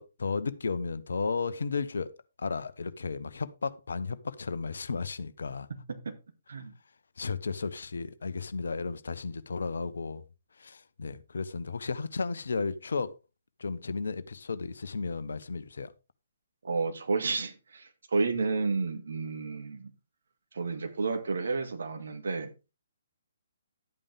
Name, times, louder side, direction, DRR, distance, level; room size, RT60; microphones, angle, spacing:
voice 1, 0.0-2.1 2.4-5.7 7.2-10.2 10.6-13.1 13.6-15.9, left 4 dB, 60° left, 0.9 m, -34 dB
voice 2, 16.6-19.9 20.5-22.5, right 4 dB, 60° right, 2.2 m, -31 dB
11.5 x 8.8 x 3.5 m
figure-of-eight pair, 130°, 0 cm